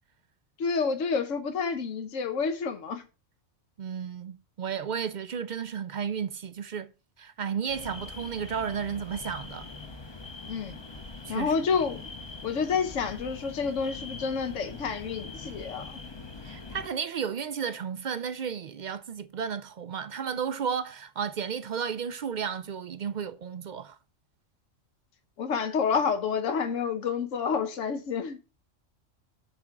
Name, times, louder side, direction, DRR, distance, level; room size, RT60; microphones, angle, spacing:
voice 1, 0.6-3.0 10.5-10.8 11.3-12.1 12.4-16.0 25.4-28.4, left 5 dB, 80° left, 1.2 m, -29 dB
voice 2, 3.8-6.9 7.2-9.7 11.3-11.5 16.4-24.0, right 7 dB, 60° right, 0.4 m, -33 dB
sound 1, 7.7-16.9, left 3 dB, 25° left, 0.6 m, -43 dB
8.4 x 3.6 x 5.7 m
omnidirectional pair, 1.3 m